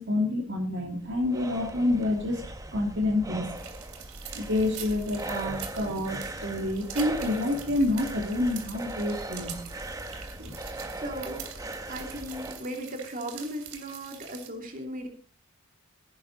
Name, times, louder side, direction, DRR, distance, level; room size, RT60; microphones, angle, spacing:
voice 1, 0.0-3.5 4.4-9.6 10.4-10.6, left 2 dB, 55° right, 2 dB, 2.5 m, -28 dB
sound 1, 0.8-12.6, right 1 dB, 15° right, 1.0 m, -39 dB
sound 2, 3.5-14.5, right 9 dB, 85° right, 2.8 m, -45 dB
voice 2, 10.9-11.4 11.9-15.1, right 1 dB, 40° right, 3 dB, 2.7 m, -37 dB
15.5 x 10.5 x 4.0 m, 0.41 s
head